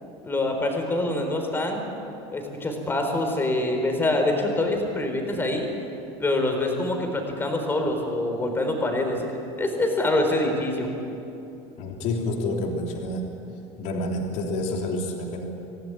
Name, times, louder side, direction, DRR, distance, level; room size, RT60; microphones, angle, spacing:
voice 1, 0.2-1.9 2.3-5.7 6.2-9.3 9.6-10.9, left 2 dB, 15° left, 3 dB, 4.2 m, -25 dB
voice 2, 11.8-13.4 13.8-15.4, left 1 dB, 55° left, 1 dB, 3.4 m, -28 dB
25.0 x 16.5 x 9.7 m, 2.8 s
cardioid pair, 145°, 14 cm